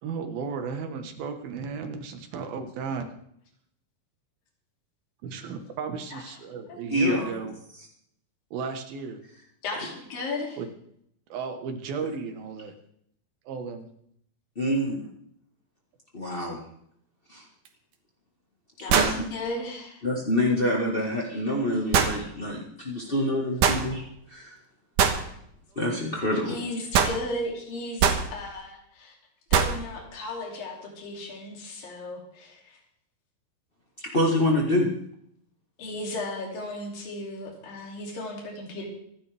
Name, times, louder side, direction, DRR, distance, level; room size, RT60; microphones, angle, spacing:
voice 1, 0.0-3.1 5.2-7.5 8.5-9.2 10.6-10.7 11.3-12.7 13.5-13.9, right 5 dB, 90° right, 6 dB, 3.3 m, -34 dB
voice 2, 6.9-7.3 14.5-15.0 16.1-16.6 17.3-17.4 18.9-19.1 20.0-24.5 25.7-26.6 34.1-34.9, left 1 dB, 40° left, -2 dB, 0.8 m, -26 dB
voice 3, 9.6-10.6 18.8-20.0 26.3-29.1 29.5-32.8 35.8-38.8, left 2 dB, 75° left, -1 dB, 4.7 m, -35 dB
sound 1, 17.7-17.8 18.9-19.2 21.9-22.2 23.6-23.8 25.0-25.2 26.9-27.2 28.0-28.3 29.5-29.8, right 7 dB, 70° right, 2.6 m, -21 dB
26.0 x 11.0 x 3.5 m, 0.70 s
omnidirectional pair, 4.1 m